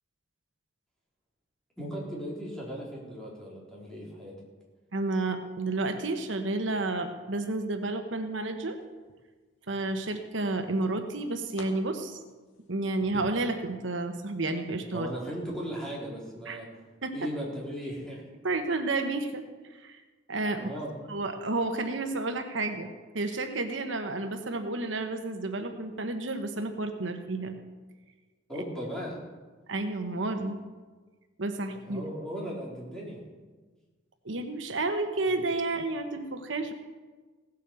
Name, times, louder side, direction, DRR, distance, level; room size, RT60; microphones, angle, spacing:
voice 1, 1.8-4.3 14.9-16.7 17.1-18.2 20.5-20.9 28.5-29.2 31.9-33.2, equal, 5° left, -5 dB, 3.9 m, -37 dB
voice 2, 4.9-8.8 9.7-12.2 12.7-15.1 16.4-16.6 17.0-17.2 18.4-20.0 20.3-20.7 21.1-27.6 29.7-30.6 31.4-32.0 34.2-36.7, right 2 dB, 75° right, 6 dB, 1.1 m, -31 dB
sound 1, 8.5-9.0 9.7-10.6 10.9-11.6 12.1-13.9 14.5-14.7 15.4-15.6, left 1 dB, 85° left, 1.9 m, -50 dB
17.0 x 8.3 x 7.1 m, 1.3 s
head